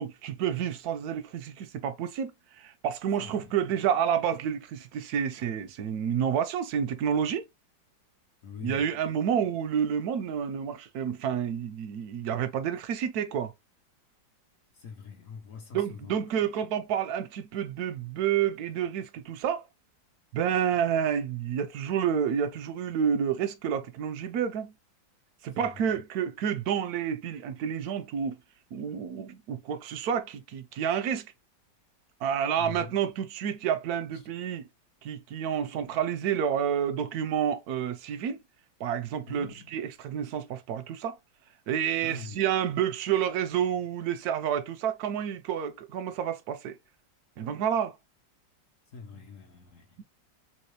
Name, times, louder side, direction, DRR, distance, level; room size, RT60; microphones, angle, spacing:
voice 1, 0.0-2.3 2.6-7.4 8.6-13.5 15.7-19.6 20.3-24.7 25.4-28.4 28.7-31.3 32.2-34.6 35.0-38.4 38.8-41.2 41.7-46.8 47.4-47.9, right 8 dB, 70° right, 0.9 m, -29 dB
voice 2, 3.2-3.6 8.4-9.0 14.8-16.2 25.6-25.7 32.6-32.9 39.3-39.6 42.0-42.4 48.9-50.0, left 5 dB, 55° left, 1.0 m, -43 dB
3.2 x 3.1 x 3.2 m
omnidirectional pair, 2.0 m